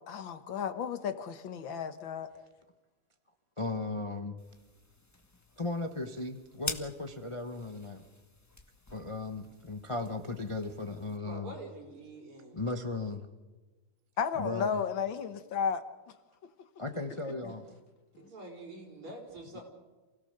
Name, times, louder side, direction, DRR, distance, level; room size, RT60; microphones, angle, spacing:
voice 1, 0.0-2.3 14.2-15.8 18.2-18.3, left 7 dB, 65° left, 10 dB, 1.7 m, -33 dB
voice 2, 3.6-4.4 5.6-8.0 8.9-11.6 12.5-13.3 14.4-14.7 16.8-17.7 19.5-19.6, left 3 dB, 30° left, 6 dB, 0.6 m, -36 dB
sound 1, 4.4-11.2, left 2 dB, 10° left, 1.0 m, -46 dB
voice 3, 11.2-12.6 17.4-17.5 18.2-19.6, right 2 dB, 75° right, 0 dB, 5.6 m, -46 dB
28.0 x 17.0 x 6.7 m, 1.2 s
omnidirectional pair, 2.4 m